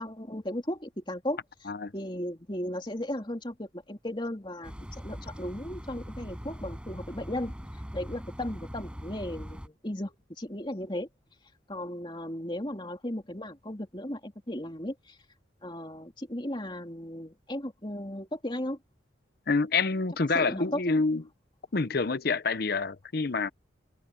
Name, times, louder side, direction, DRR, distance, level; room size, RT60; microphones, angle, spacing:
voice 1, 0.0-1.4 1.9-7.5 7.9-11.1 11.7-15.2 15.6-18.8 20.3-21.0, left 1 dB, 25° left, 3.3 m, -36 dB
sound 1, 4.6-9.7, equal, 5° right, 6.7 m, -41 dB
voice 2, 19.5-21.2 21.7-23.5, left 4 dB, 55° left, 0.7 m, -27 dB
head